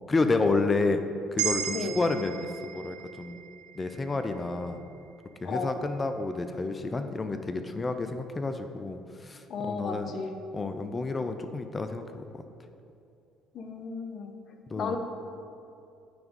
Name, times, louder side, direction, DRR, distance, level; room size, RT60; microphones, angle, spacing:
voice 1, 0.1-1.0 1.3-3.4 3.8-4.8 5.4-10.1 10.5-12.4 14.7-15.0, left 3 dB, 25° left, 8 dB, 0.5 m, -30 dB
sound 1, 1.4-5.6, right 9 dB, 85° right, 0.4 m, -36 dB
voice 2, 5.4-5.7 9.5-10.4 13.5-14.3 14.8-15.0, left 4 dB, 50° left, 5 dB, 0.8 m, -34 dB
9.4 x 3.6 x 5.2 m, 2.6 s
hypercardioid pair, 65°, 0 cm